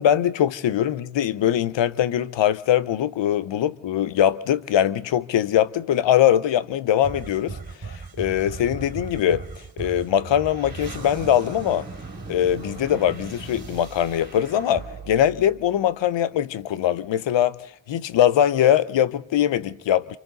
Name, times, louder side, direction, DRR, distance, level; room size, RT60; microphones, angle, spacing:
voice 1, 0.0-7.6 7.9-9.4 9.8-11.9 12.3-17.6 17.9-20.2, left 10 dB, 80° left, 0.8 m, -22 dB
sound 1, 7.0-16.4, right 4 dB, 50° right, 2.6 m, -38 dB
27.5 x 24.5 x 4.0 m
cardioid pair, 55°, 44 cm